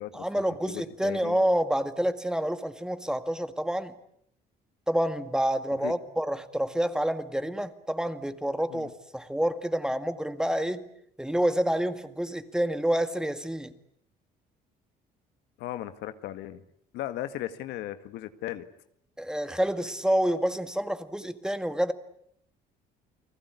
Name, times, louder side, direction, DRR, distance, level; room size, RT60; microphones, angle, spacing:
voice 1, 0.1-3.9 4.9-10.8 11.2-13.7 19.2-21.9, right 1 dB, 5° right, 10 dB, 2.0 m, -28 dB
voice 2, 0.7-1.4 5.8-5.9 8.7-8.9 15.6-16.6 16.9-18.6, left 13 dB, 85° left, 10 dB, 1.9 m, -36 dB
30.0 x 20.0 x 9.7 m, 0.71 s
cardioid pair, 110°, 17 cm